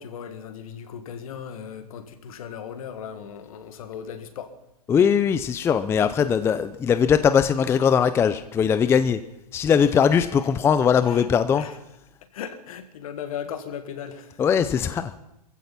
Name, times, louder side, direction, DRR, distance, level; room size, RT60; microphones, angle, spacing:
voice 1, 0.0-4.5 11.1-11.3 11.5-11.7 12.3-14.4, left 8 dB, 60° left, 9 dB, 1.9 m, -37 dB
voice 2, 4.9-9.2 9.5-11.6 14.4-15.2, left 7 dB, 10° left, 12 dB, 0.5 m, -20 dB
21.5 x 15.5 x 4.2 m, 0.84 s
hypercardioid pair, 130°, 20 cm